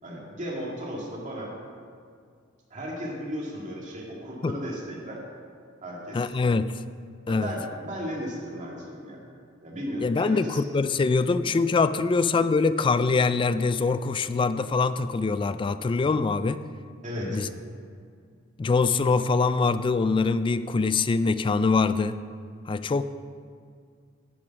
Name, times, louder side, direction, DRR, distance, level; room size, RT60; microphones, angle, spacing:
voice 1, 0.0-1.5 2.7-5.2 5.8-6.3 7.3-9.2 9.6-10.6 17.0-17.4, equal, 40° right, -3 dB, 2.3 m, -35 dB
voice 2, 6.1-6.8 7.3-7.5 10.0-16.6 17.3-17.5 18.6-22.2 22.7-23.0, left 4 dB, 25° left, 13 dB, 0.3 m, -24 dB
10.5 x 7.0 x 5.9 m, 2.1 s
head